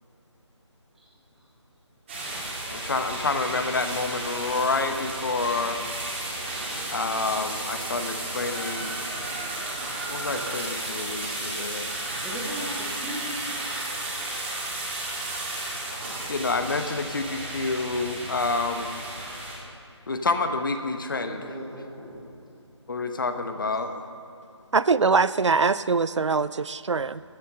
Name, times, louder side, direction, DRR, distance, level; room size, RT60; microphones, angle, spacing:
sound 1, 2.1-19.6, right 2 dB, 25° right, 2.2 m, -33 dB
voice 1, 2.7-5.8 6.9-9.0 10.1-12.0 16.3-18.9 20.1-21.6 22.9-24.1, left 3 dB, 45° left, 8 dB, 0.9 m, -28 dB
voice 2, 12.2-13.3 21.2-22.3, equal, ahead, -5 dB, 0.6 m, -37 dB
voice 3, 24.7-27.2, right 4 dB, 70° right, 17 dB, 0.4 m, -22 dB
13.5 x 8.2 x 6.6 m, 2.6 s
figure-of-eight pair, 160°, 16 cm